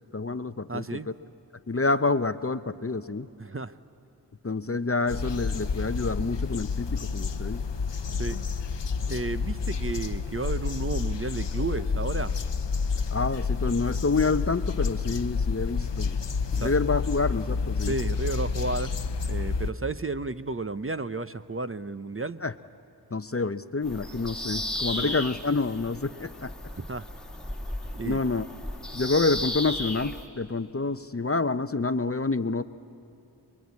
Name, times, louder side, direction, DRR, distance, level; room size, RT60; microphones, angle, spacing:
voice 1, 0.1-1.0 1.7-3.3 4.4-7.6 13.1-16.1 16.5-17.9 22.4-22.5 23.1-26.5 28.1-28.5 28.9-32.6, left 3 dB, 35° left, 13 dB, 0.7 m, -28 dB
voice 2, 0.7-1.1 3.4-3.7 8.2-8.4 9.1-12.4 16.5-16.7 17.8-18.9 19.3-22.4 24.9-25.2 26.8-27.1 27.9-28.2, right 3 dB, 30° right, 12 dB, 0.7 m, -32 dB
sound 1, 5.1-19.7, left 5 dB, 90° left, 0.9 m, -29 dB
Bird vocalization bird call bird song, 23.8-30.3, left 1 dB, ahead, 2.0 m, -35 dB
26.0 x 22.0 x 9.6 m, 3.0 s
wide cardioid pair, 50°, 42 cm